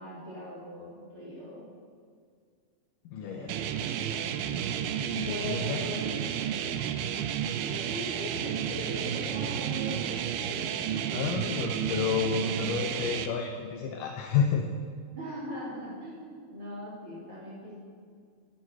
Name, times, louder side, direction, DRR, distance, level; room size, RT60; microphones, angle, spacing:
voice 1, 0.0-1.6 3.2-3.7 5.2-6.1 7.8-10.8 15.1-17.8, equal, 35° right, -6 dB, 3.5 m, -40 dB
voice 2, 3.1-3.5 5.1-5.8 11.1-14.7, left 6 dB, 80° left, 3 dB, 2.0 m, -30 dB
sound 1, 3.5-13.3, right 9 dB, 80° right, 2.1 m, -32 dB
10.5 x 7.9 x 7.4 m, 2.1 s
omnidirectional pair, 4.5 m